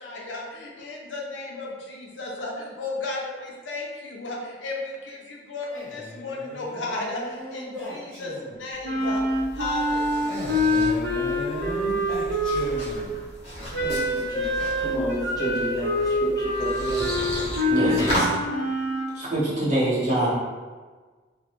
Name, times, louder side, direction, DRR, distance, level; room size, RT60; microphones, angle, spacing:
voice 1, 0.0-10.3, left 2 dB, 80° left, -2 dB, 0.5 m, -34 dB
Male speech man speaking, 5.7-8.7 10.3-13.3, left 1 dB, 5° left, 0.9 m, -36 dB
sound 1, 8.8-18.3, equal, 35° left, 0.8 m, -35 dB
Wind instrument woodwind instrument, 8.8-13.0 13.7-19.1, left 1 dB, 65° right, 0.5 m, -25 dB
voice 2, 13.8-17.1 17.7-18.2, equal, 20° left, -5 dB, 0.4 m, -31 dB
voice 3, 17.7-18.2 19.1-20.3, right 1 dB, 40° right, -9 dB, 0.9 m, -24 dB
2.2 x 2.1 x 2.9 m, 1.4 s
head